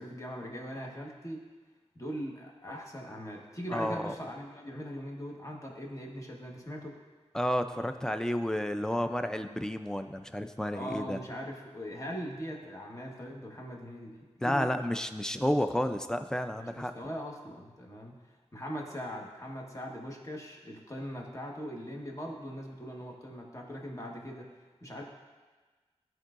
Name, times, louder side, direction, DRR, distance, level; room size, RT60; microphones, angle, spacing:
voice 1, 0.0-1.4 1.9-6.9 10.7-14.7 16.6-18.1 18.5-24.5 24.8-25.0, equal, 25° left, -1 dB, 1.3 m, -40 dB
voice 2, 3.7-4.1 7.3-11.2 14.4-16.9, equal, 5° left, 8 dB, 0.4 m, -31 dB
13.5 x 4.7 x 2.5 m, 1.3 s
wide cardioid pair, 70°, 12 cm